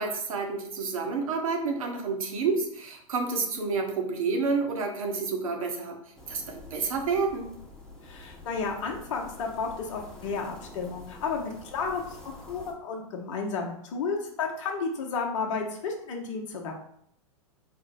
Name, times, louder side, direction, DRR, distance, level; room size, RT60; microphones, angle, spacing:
voice 1, 0.0-6.0 6.3-7.5, right 4 dB, 75° right, 3 dB, 0.9 m, -29 dB
sound 1, 6.2-12.7, left 2 dB, 5° left, 0.8 m, -47 dB
voice 2, 8.0-16.7, left 4 dB, 60° left, 1 dB, 0.7 m, -32 dB
4.3 x 2.0 x 4.0 m, 0.69 s
hypercardioid pair, 105°, 18 cm